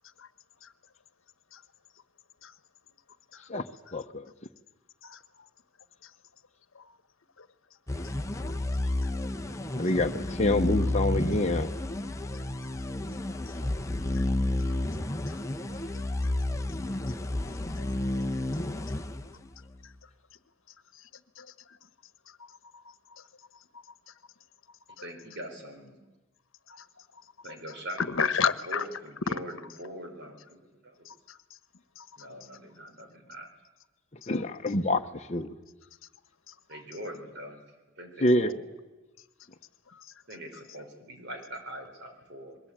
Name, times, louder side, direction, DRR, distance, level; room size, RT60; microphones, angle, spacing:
voice 1, 3.9-4.3 9.7-11.7 34.3-35.5 38.2-38.6, left 1 dB, 35° left, 1.1 m, -27 dB
sound 1, 7.9-19.7, left 1 dB, 15° left, 1.0 m, -31 dB
voice 2, 15.3-15.9 16.2-16.3 17.8-17.9 21.4-21.5 22.4-23.2 23.7-23.8 26.7-26.9 27.1-27.2 28.0-28.8 29.3-29.4 31.0-31.4 32.0-32.1 36.7-36.8 39.9-40.1, left 6 dB, 70° left, 1.2 m, -33 dB
voice 3, 25.0-26.0 27.4-28.3 28.7-31.1 32.2-33.5 36.7-37.6 38.0-38.6 40.3-42.6, right 1 dB, 55° right, 4.8 m, -42 dB
26.5 x 22.5 x 8.9 m
head